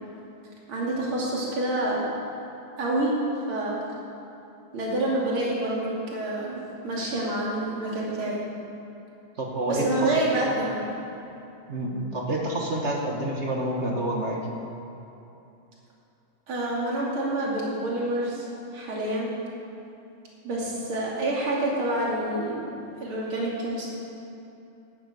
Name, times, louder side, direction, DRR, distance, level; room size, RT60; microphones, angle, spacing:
voice 1, 0.7-2.1 2.8-3.2 3.5-3.8 4.7-6.6 6.8-8.4 9.7-10.9 16.5-18.5 18.7-19.3 20.4-22.7 23.0-23.9, right 1 dB, 90° right, -5 dB, 3.5 m, -27 dB
voice 2, 9.4-10.2 11.7-14.4, right 1 dB, 35° right, -1 dB, 1.6 m, -28 dB
11.5 x 9.3 x 8.3 m, 2.8 s
omnidirectional pair, 2.2 m